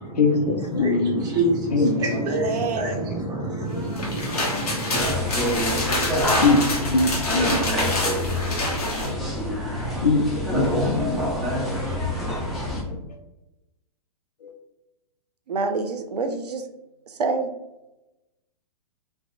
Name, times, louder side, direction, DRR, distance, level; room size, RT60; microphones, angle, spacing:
voice 1, 0.2-1.2 1.7-2.3 5.4-5.5 6.4-7.7 10.0-11.2 12.2-12.3 14.4-14.5, left 3 dB, 85° left, 5 dB, 0.5 m, -22 dB
voice 2, 0.8-5.0, right 2 dB, 20° right, -3 dB, 0.8 m, -27 dB
voice 3, 2.1-3.0 15.5-16.6 17.2-17.5, right 4 dB, 80° right, 6 dB, 0.4 m, -27 dB
sound 1, 3.8-9.1, left 2 dB, 65° left, 0.9 m, -27 dB
sound 2, 4.9-12.8, left 1 dB, ahead, 0.4 m, -26 dB
2.5 x 2.2 x 2.5 m, 0.98 s
figure-of-eight pair, 115°, 20 cm